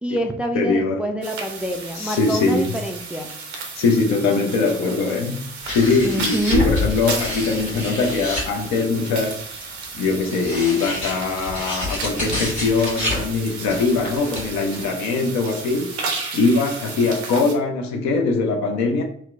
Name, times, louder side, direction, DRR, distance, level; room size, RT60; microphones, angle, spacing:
voice 1, 0.0-3.3 6.0-6.7, equal, 5° right, 0.3 m, -26 dB
voice 2, 0.5-1.0 1.9-2.7 3.8-5.5 5.7-9.4 9.9-19.0, left 3 dB, 60° left, 0.6 m, -21 dB
sound 1, 1.2-17.5, right 4 dB, 80° right, 0.5 m, -34 dB
sound 2, 5.6-9.0 10.0-14.9, left 2 dB, 85° left, 1.0 m, -28 dB
2.8 x 2.0 x 3.4 m
figure-of-eight pair, 40°, 31 cm